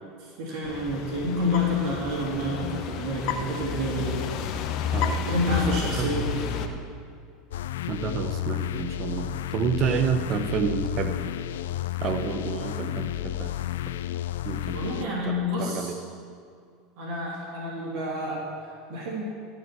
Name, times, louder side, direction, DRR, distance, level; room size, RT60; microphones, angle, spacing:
voice 1, 0.4-4.2 5.3-6.5 14.7-15.9 17.0-19.2, left 1 dB, 65° right, -5 dB, 3.2 m, -29 dB
sound 1, 0.6-6.7, left 7 dB, 60° left, 0.9 m, -31 dB
voice 2, 5.8-6.2 7.9-11.2 12.0-13.5 14.4-16.0, right 6 dB, 45° right, 8 dB, 1.0 m, -29 dB
sound 2, 7.5-15.1, left 13 dB, 85° left, 0.4 m, -32 dB
14.5 x 5.4 x 7.7 m, 2.2 s
supercardioid pair, 105°, 0 cm